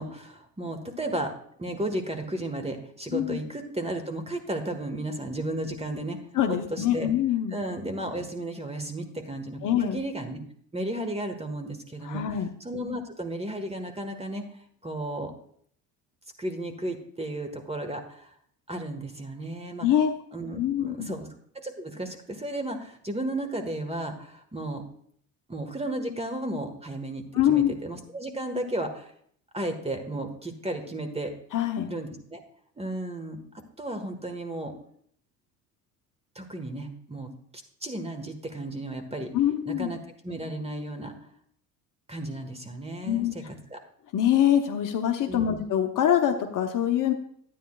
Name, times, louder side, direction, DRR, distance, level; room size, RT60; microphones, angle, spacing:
voice 1, 0.0-1.3 1.6-6.2 6.5-7.1 7.5-10.4 10.7-12.2 12.6-14.4 14.8-15.3 16.4-18.3 18.7-19.9 20.3-21.3 21.5-24.8 25.5-29.1 29.5-31.3 31.9-32.4 32.8-33.4 33.8-34.7 36.3-37.3 37.8-39.3 39.6-41.1 42.1-43.8 45.3-45.6, right 1 dB, 10° right, 6 dB, 1.6 m, -34 dB
voice 2, 6.3-7.6 9.6-10.0 12.0-12.5 19.8-20.1 20.5-21.1 27.3-27.7 31.5-31.9 39.3-39.9 43.0-43.3 44.1-47.1, left 10 dB, 40° left, 4 dB, 1.0 m, -24 dB
12.5 x 9.4 x 2.4 m, 0.64 s
hypercardioid pair, 65°, 49 cm